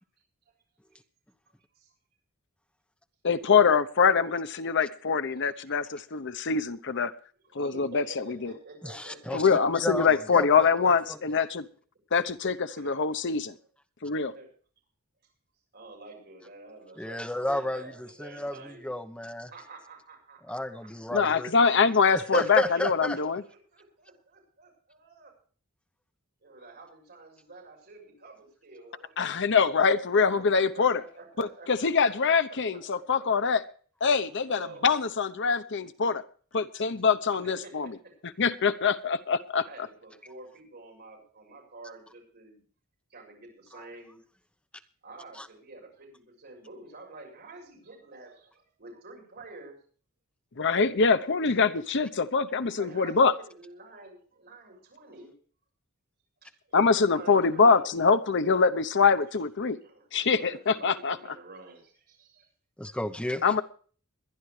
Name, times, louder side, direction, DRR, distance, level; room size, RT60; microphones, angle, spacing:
voice 1, 3.2-7.1 7.5-8.5 9.3-11.6 12.1-13.5 14.0-14.3 21.1-23.4 29.2-31.0 31.4-33.6 34.0-36.2 36.5-37.9 38.4-39.6 50.6-53.3 56.7-59.8 60.1-61.2 63.4-63.6, left 5 dB, 55° left, 11 dB, 0.8 m, -24 dB
voice 2, 5.2-5.8 7.4-10.0 12.8-12.9 14.3-14.5 15.7-18.9 19.5-20.9 22.0-22.8 23.4-25.3 26.4-29.6 30.3-30.4 30.7-32.6 33.0-33.3 34.3-34.9 37.3-38.1 39.6-42.6 43.1-44.2 45.0-49.8 51.4-51.6 52.6-55.3 56.4-57.9 59.8-62.5, right 3 dB, 50° right, 1 dB, 7.0 m, -49 dB
voice 3, 8.8-10.7 11.1-11.2 17.0-19.5 20.5-21.5 22.1-23.2 45.4-45.5 62.8-63.4, left 1 dB, 5° left, 7 dB, 1.0 m, -32 dB
22.0 x 11.0 x 3.3 m, 0.43 s
head